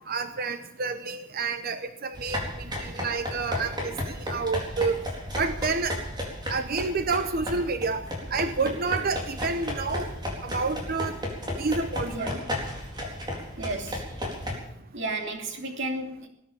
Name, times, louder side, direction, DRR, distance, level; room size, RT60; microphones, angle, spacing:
voice 1, 0.1-2.4 2.8-4.0 4.3-5.0 5.4-6.0 6.5-8.0 8.3-10.1 10.4-11.1 11.6-12.3, right 4 dB, 50° right, 10 dB, 0.8 m, -29 dB
sound 1, 2.1-14.5, left 1 dB, 20° right, 4.2 m, -34 dB
voice 2, 12.0-12.5 13.6-14.1 14.9-16.3, right 2 dB, 65° right, 3 dB, 2.8 m, -33 dB
20.0 x 10.0 x 7.1 m, 0.78 s
head